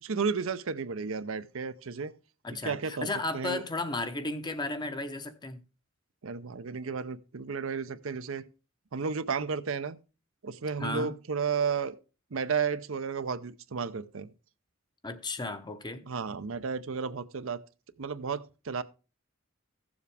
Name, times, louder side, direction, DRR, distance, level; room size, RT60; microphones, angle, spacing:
voice 1, 0.0-2.1 2.6-3.1 3.3-3.6 6.2-8.5 8.9-10.0 10.4-12.0 12.3-14.3 16.1-17.6 18.0-18.8, right 5 dB, 70° right, 0.6 m, -33 dB
voice 2, 2.4-5.6 10.8-11.1 15.0-16.0, left 2 dB, 20° left, 0.8 m, -34 dB
15.5 x 7.2 x 3.4 m
head